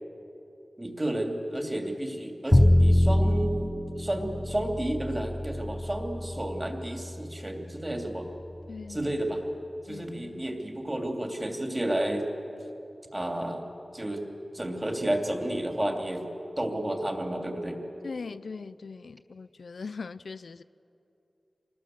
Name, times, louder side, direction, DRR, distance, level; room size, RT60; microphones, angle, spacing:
voice 1, 0.8-8.3 8.9-9.4 9.8-12.3 13.1-14.3 14.5-16.3 16.6-17.8, right 1 dB, 20° right, 2.9 m, -31 dB
Bowed string instrument, 2.5-8.6, left 1 dB, 20° left, 0.6 m, -25 dB
voice 2, 8.7-9.1 9.9-10.4 18.0-20.6, left 4 dB, 85° left, 0.5 m, -40 dB
26.5 x 20.5 x 7.8 m
wide cardioid pair, 90°, 0 cm